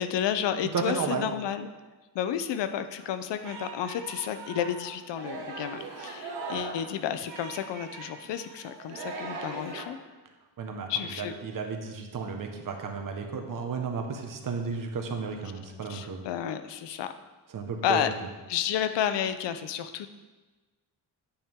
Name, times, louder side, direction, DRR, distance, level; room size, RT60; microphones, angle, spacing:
voice 1, 0.0-1.7 2.1-10.0 10.9-11.3 15.9-17.1 17.8-18.1 18.5-20.1, left 9 dB, 85° left, 10 dB, 0.7 m, -31 dB
voice 2, 0.7-1.3 10.6-16.2 17.5-18.1, right 5 dB, 50° right, 4 dB, 1.3 m, -33 dB
Singing, 3.0-9.8, right 4 dB, 85° right, 1.8 m, -40 dB
10.0 x 8.9 x 3.7 m, 1.3 s
cardioid pair, 125°, 41 cm